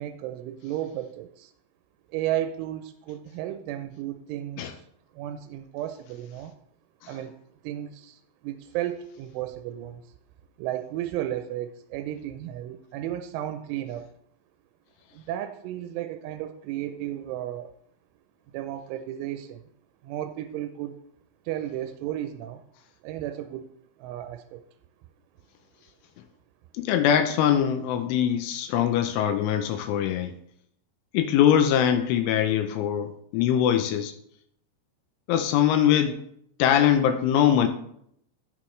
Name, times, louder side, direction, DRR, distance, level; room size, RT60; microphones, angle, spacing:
voice 1, 0.0-1.5 2.1-4.9 5.1-6.5 7.1-7.3 7.6-10.1 10.6-14.1 15.1-17.7 18.5-19.6 20.0-21.0 21.5-22.6 23.0-23.7 24.0-24.6, right 12 dB, 80° right, 8 dB, 2.9 m, -34 dB
voice 2, 26.7-30.3 31.1-34.1 35.3-36.2 36.6-37.7, left 9 dB, 80° left, 6 dB, 3.1 m, -22 dB
16.0 x 6.4 x 3.2 m, 0.71 s
omnidirectional pair, 5.7 m